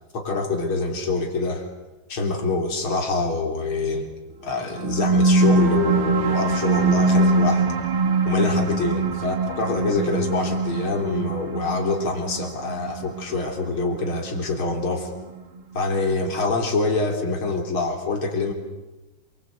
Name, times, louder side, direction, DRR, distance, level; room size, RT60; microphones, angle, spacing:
voice 1, 0.1-1.7 2.1-4.1 4.4-7.6 8.3-15.1 15.7-18.5, left 3 dB, 75° left, 3 dB, 4.2 m, -25 dB
sound 1, 4.6-15.6, right 3 dB, 75° right, 3.2 m, -23 dB
28.0 x 22.5 x 8.3 m, 1.1 s
omnidirectional pair, 2.3 m